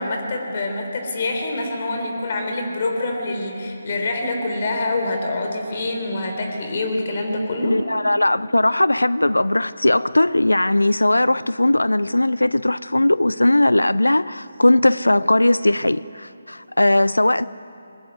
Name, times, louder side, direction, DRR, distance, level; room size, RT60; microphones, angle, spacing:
voice 1, 0.0-7.8, left 2 dB, 40° left, 3.6 m, -25 dB
voice 2, 7.6-17.5, left 1 dB, 80° left, 0.4 m, -18 dB
20.5 x 19.5 x 9.5 m
figure-of-eight pair, 150°, 0 cm